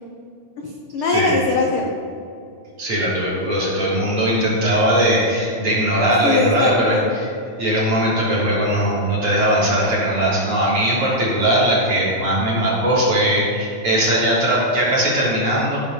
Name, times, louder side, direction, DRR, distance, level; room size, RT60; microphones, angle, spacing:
voice 1, 0.6-1.9 6.2-7.1, left 3 dB, 70° left, 0 dB, 1.2 m, -21 dB
voice 2, 2.8-7.3 7.6-15.8, right 1 dB, 40° right, -7 dB, 4.2 m, -19 dB
15.5 x 5.3 x 6.8 m, 2.5 s
omnidirectional pair, 3.7 m